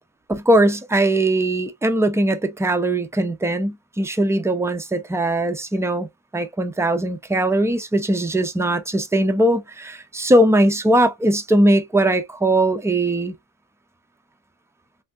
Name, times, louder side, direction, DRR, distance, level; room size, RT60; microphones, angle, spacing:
voice 1, 0.3-6.1 6.3-13.3, right 1 dB, 5° right, 0.3 m, -20 dB
3.2 x 2.6 x 2.3 m
wide cardioid pair, 150°, 50 cm